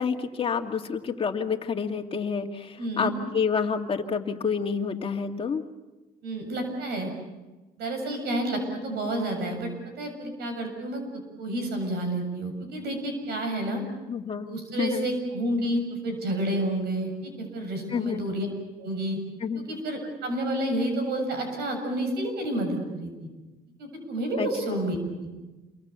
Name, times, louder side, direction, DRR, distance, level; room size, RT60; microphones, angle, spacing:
voice 1, 0.0-5.6 14.1-14.5 14.8-15.1 17.9-18.2 19.4-19.6 24.4-24.8, left 6 dB, 35° left, 4 dB, 2.1 m, -29 dB
voice 2, 2.8-3.1 6.2-7.1 7.8-9.7 10.0-11.0 11.4-13.8 14.5-18.5 18.8-19.2 19.7-23.3 23.8-25.3, right 1 dB, 75° right, 5 dB, 7.3 m, -30 dB
28.5 x 23.5 x 6.9 m, 1.1 s
cardioid pair, 110°, 17 cm